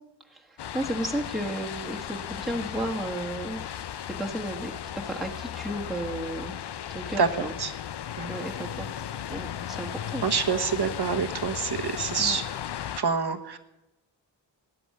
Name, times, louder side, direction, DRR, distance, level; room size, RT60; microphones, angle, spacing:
voice 1, 0.3-3.8 4.1-6.6 6.9-7.5 8.3-8.9 9.3-10.2 12.2-12.4, right 1 dB, ahead, 0 dB, 1.4 m, -33 dB
sound 1, 0.6-13.0, left 10 dB, 60° left, 0.6 m, -36 dB
voice 2, 10.2-12.4 13.0-13.6, right 5 dB, 55° right, 8 dB, 1.2 m, -26 dB
14.0 x 9.9 x 6.6 m, 0.97 s
wide cardioid pair, 75°, 45 cm